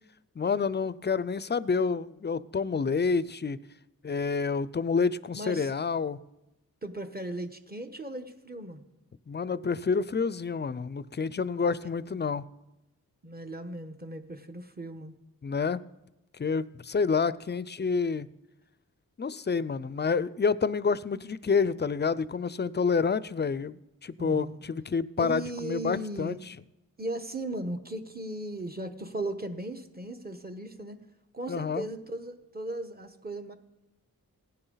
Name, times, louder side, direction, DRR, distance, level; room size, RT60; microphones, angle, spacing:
voice 1, 0.4-3.6 4.0-6.2 9.3-12.4 15.4-15.8 16.4-18.3 19.2-26.4 31.5-31.9, left 5 dB, 30° left, 18 dB, 0.5 m, -28 dB
voice 2, 5.3-5.7 6.8-8.8 11.6-11.9 13.2-15.1 24.2-24.6 25.2-26.4 27.0-31.0 31.3-33.5, right 1 dB, 25° right, 7 dB, 1.2 m, -37 dB
16.5 x 9.9 x 4.0 m, 0.94 s
cardioid pair, 55°, 35 cm